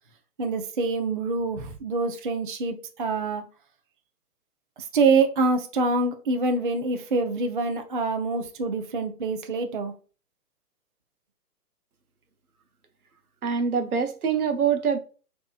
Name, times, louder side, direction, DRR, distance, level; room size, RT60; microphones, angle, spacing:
voice 1, 0.4-3.4 4.9-9.9, right 3 dB, 35° right, 0.4 m, -25 dB
voice 2, 13.4-15.0, right 6 dB, 70° right, 0.8 m, -24 dB
6.2 x 2.8 x 2.4 m
figure-of-eight pair, 130°, 46 cm